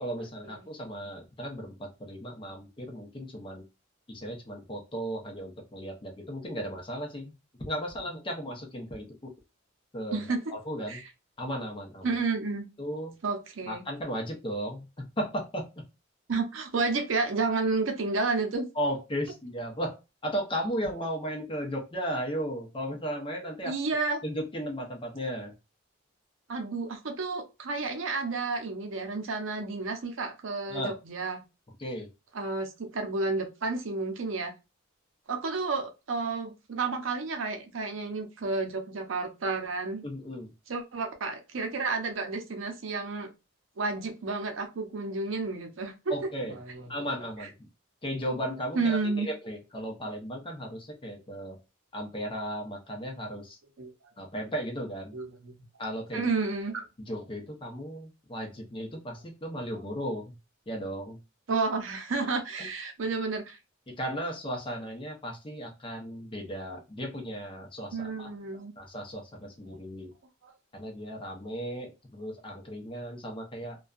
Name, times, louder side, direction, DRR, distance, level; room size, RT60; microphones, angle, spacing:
voice 1, 0.0-3.6 4.1-7.3 7.7-9.3 9.9-11.0 11.4-12.2 12.8-13.1 13.7-15.7 18.8-20.0 20.2-23.7 24.2-25.5 30.7-30.9 31.8-32.1 40.0-40.5 46.1-46.6 46.9-47.5 48.0-51.6 51.9-53.6 54.2-55.2 55.8-56.3 57.0-60.3 60.7-61.2 62.6-62.7 64.0-68.3 68.8-70.1 70.7-73.8, equal, 25° left, 2 dB, 0.7 m, -35 dB
voice 2, 10.1-10.5 10.9-11.0 12.0-12.7 13.2-13.8 16.3-18.7 23.6-24.2 26.5-31.4 32.3-34.5 35.3-40.0 40.7-43.3 43.8-46.1 46.6-46.9 47.4-47.5 48.7-49.3 53.8-53.9 55.1-55.5 56.1-56.8 61.5-63.6 67.9-68.7 70.4-70.5, right 3 dB, 70° right, 5 dB, 0.6 m, -31 dB
2.6 x 2.3 x 2.4 m, 0.27 s
head